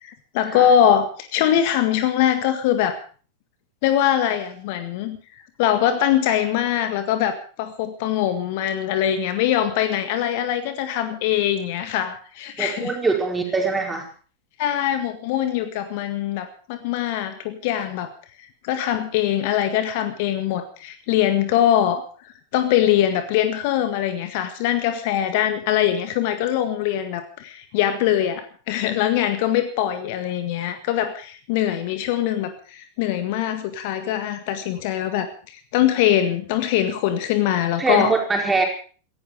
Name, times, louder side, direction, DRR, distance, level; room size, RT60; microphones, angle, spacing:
voice 1, 0.0-3.0 3.8-5.2 5.6-13.0 14.6-18.1 18.6-22.0 22.5-38.1, left 10 dB, 50° left, 10 dB, 1.8 m, -22 dB
voice 2, 12.6-14.1 37.8-38.6, right 4 dB, 10° right, 2 dB, 4.9 m, -22 dB
18.0 x 15.0 x 5.1 m, 0.40 s
figure-of-eight pair, 90°, 0 cm